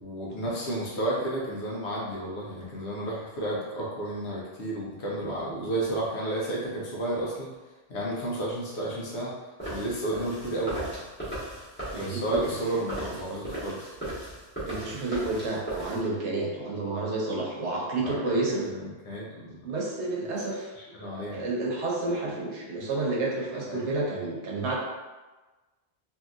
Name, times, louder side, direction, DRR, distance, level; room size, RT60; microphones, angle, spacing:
voice 1, 0.0-7.5 7.9-9.3 9.7-10.9 11.9-13.9 18.0-19.6 20.8-21.5 23.6-23.9, right 1 dB, 80° left, -4 dB, 1.1 m, -32 dB
sound 1, 9.6-16.0, right 1 dB, 10° left, 1.1 m, -37 dB
voice 2, 12.5-12.9 14.7-18.5 19.6-20.7 21.0-24.8, right 2 dB, 85° right, -2 dB, 1.0 m, -30 dB
2.9 x 2.7 x 2.4 m, 1.2 s
omnidirectional pair, 1.1 m